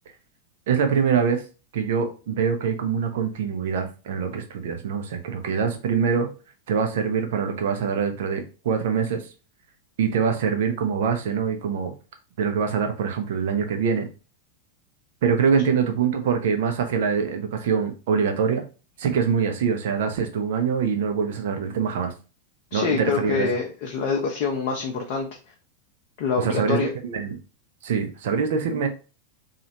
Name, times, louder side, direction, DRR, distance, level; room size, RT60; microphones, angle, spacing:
voice 1, 0.7-1.4 1.7-6.3 6.7-9.2 10.0-11.9 12.4-14.1 15.2-18.6 19.0-22.1 22.7-23.5 26.4-26.8 27.0-27.3 27.8-28.9, right 6 dB, 55° right, 6 dB, 0.6 m, -24 dB
voice 2, 22.7-25.3 26.2-26.9, left 5 dB, 45° left, 0 dB, 0.6 m, -25 dB
3.0 x 2.4 x 2.8 m, 0.34 s
figure-of-eight pair, 90°, 0 cm